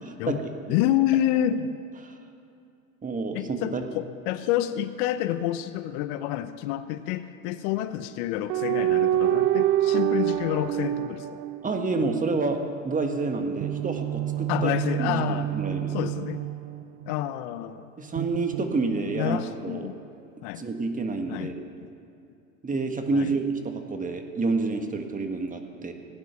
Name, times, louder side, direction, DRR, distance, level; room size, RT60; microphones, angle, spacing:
voice 1, 0.7-1.8 3.3-11.4 14.5-15.5 15.9-16.4 17.1-17.8 19.2-20.0 20.4-20.6 21.3-21.5 21.8-21.9 23.1-23.4, left 12 dB, 60° left, 12 dB, 0.8 m, -28 dB
voice 2, 3.0-3.8 11.6-14.7 15.0-16.0 18.0-19.9 20.6-21.7 22.6-25.9, right 3 dB, 20° right, 5 dB, 1.6 m, -28 dB
sound 1, 8.5-12.2 13.6-17.4 18.2-19.4, right 13 dB, 50° right, 0.7 m, -27 dB
17.0 x 9.7 x 5.9 m, 2.7 s
hypercardioid pair, 90°, 39 cm